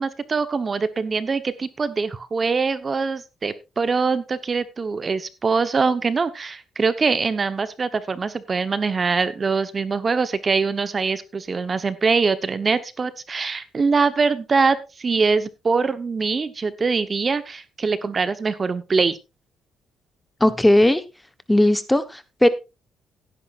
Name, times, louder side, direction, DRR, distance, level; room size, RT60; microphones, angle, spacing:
voice 1, 0.0-19.2, right 4 dB, 35° right, 12 dB, 1.0 m, -23 dB
voice 2, 20.4-21.0 21.5-22.5, left 1 dB, 10° left, 11 dB, 1.0 m, -17 dB
16.5 x 10.0 x 2.5 m, 0.26 s
cardioid pair, 90°, 0 cm